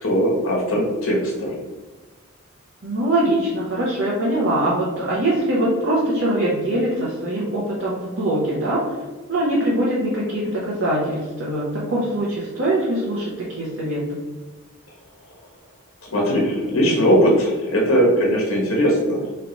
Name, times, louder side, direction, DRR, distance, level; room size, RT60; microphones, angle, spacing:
voice 1, 0.0-1.5 16.1-19.3, equal, 85° left, -2 dB, 1.3 m, -19 dB
voice 2, 2.8-8.8 9.3-14.2, right 1 dB, 60° right, -7 dB, 1.0 m, -22 dB
3.2 x 3.2 x 4.0 m, 1.2 s
head